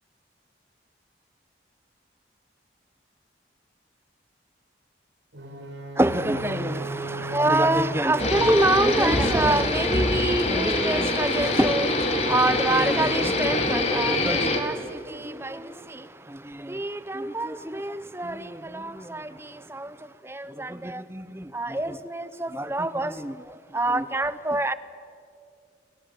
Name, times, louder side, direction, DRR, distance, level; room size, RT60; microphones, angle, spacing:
sound 1, 5.3-9.4, equal, 85° right, 3.9 m, -36 dB
voice 1, 6.0-14.8 15.2-15.6 16.7-19.3 19.7-19.9 20.3-23.3 23.7-24.7, right 1 dB, 15° right, 0.7 m, -26 dB
sound 2, 8.2-14.6, left 2 dB, 35° left, 2.4 m, -24 dB
30.0 x 24.5 x 7.6 m
head